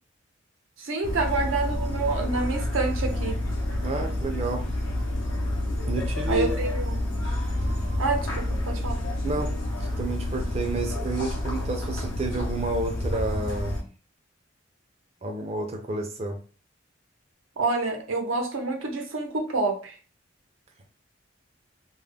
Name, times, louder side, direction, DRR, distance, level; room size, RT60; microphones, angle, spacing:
voice 1, 0.8-3.4 6.3-7.0 8.0-9.0 17.6-19.9, right 3 dB, 85° right, 2 dB, 0.7 m, -28 dB
sound 1, 1.0-13.8, left 1 dB, 75° left, 0.7 m, -29 dB
voice 2, 3.8-4.6 5.9-6.5 9.2-9.5 9.8-13.8 15.2-16.4, right 2 dB, 30° right, 3 dB, 0.5 m, -30 dB
2.3 x 2.1 x 3.4 m, 0.38 s
head